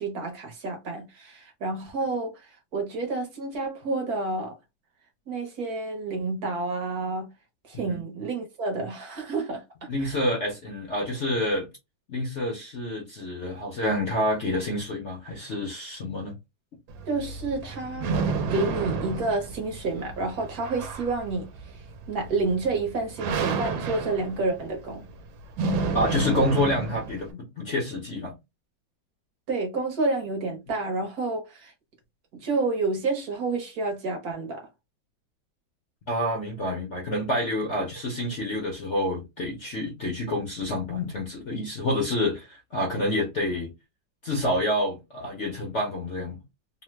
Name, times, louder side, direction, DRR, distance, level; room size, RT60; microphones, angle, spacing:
voice 1, 0.0-4.6 5.3-7.3 7.6-10.2 17.1-21.8 22.1-25.1 29.5-31.7 32.3-34.7, right 3 dB, 60° right, 1.2 m, -29 dB
voice 2, 9.9-11.7 12.1-16.4 25.9-28.3 36.1-43.7 44.2-46.4, left 1 dB, 55° left, 0.8 m, -28 dB
sound 1, 16.9-27.3, right 4 dB, 80° right, 1.3 m, -31 dB
3.2 x 2.1 x 3.0 m
omnidirectional pair, 2.1 m